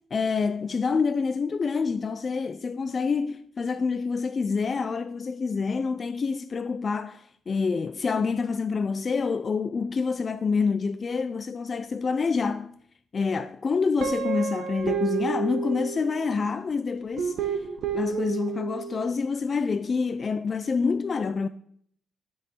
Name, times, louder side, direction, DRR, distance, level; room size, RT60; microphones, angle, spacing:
voice 1, 0.1-12.7 13.1-17.7 17.9-21.5, left 5 dB, 40° left, 0.4 m, -27 dB
Guitar, 14.0-16.5 17.2-19.1, right 7 dB, 70° right, 0.9 m, -30 dB
11.5 x 5.4 x 4.2 m
cardioid pair, 90°, 0 cm